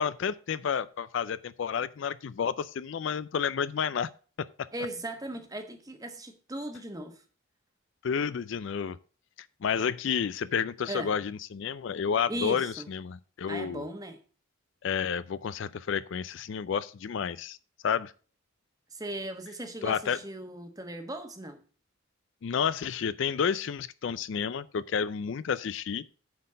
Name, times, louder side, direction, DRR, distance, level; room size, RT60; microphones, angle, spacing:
voice 1, 0.0-4.1 4.4-4.7 8.0-9.0 9.6-13.9 14.8-17.6 17.8-18.1 19.8-20.2 22.4-26.0, left 7 dB, 60° left, 0.4 m, -30 dB
voice 2, 4.7-7.2 10.9-11.2 12.3-12.9 13.5-14.2 18.9-21.6, right 1 dB, 15° right, 1.1 m, -38 dB
9.4 x 4.2 x 6.4 m
head